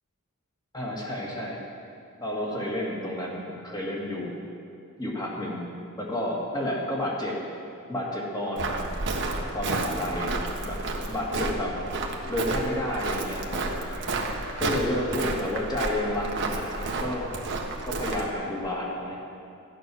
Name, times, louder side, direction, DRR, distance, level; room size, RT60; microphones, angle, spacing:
voice 1, 0.7-1.7 2.2-4.4 5.0-5.6 6.0-7.4 7.9-8.9 9.5-10.8 11.1-11.8 12.3-14.1 14.6-17.3 17.8-19.2, left 1 dB, 20° left, -3 dB, 2.1 m, -31 dB
Walk footsteps, 8.6-18.3, right 2 dB, 55° right, 1.3 m, -31 dB
14.0 x 9.3 x 6.2 m, 2.5 s
head